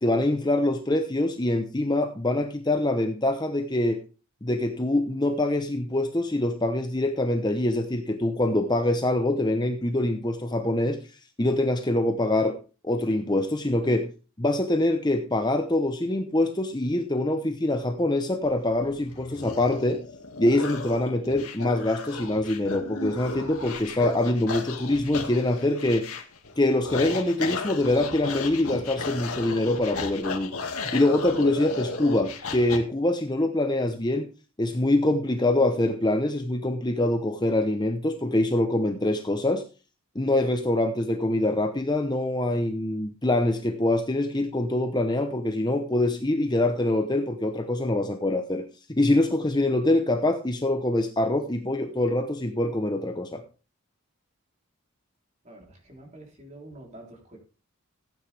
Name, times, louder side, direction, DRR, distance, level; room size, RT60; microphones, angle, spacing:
voice 1, 0.0-4.0 4.4-11.0 11.4-12.6 12.8-14.1 14.4-20.0 20.4-26.0 26.6-34.3 34.6-39.6 40.1-53.4, left 1 dB, 20° left, 6 dB, 0.9 m, -24 dB
sound 1, 18.4-32.8, left 4 dB, 85° left, 2.1 m, -35 dB
voice 2, 55.4-57.4, right 1 dB, 30° right, 1 dB, 3.6 m, -47 dB
15.0 x 9.0 x 3.4 m, 0.34 s
head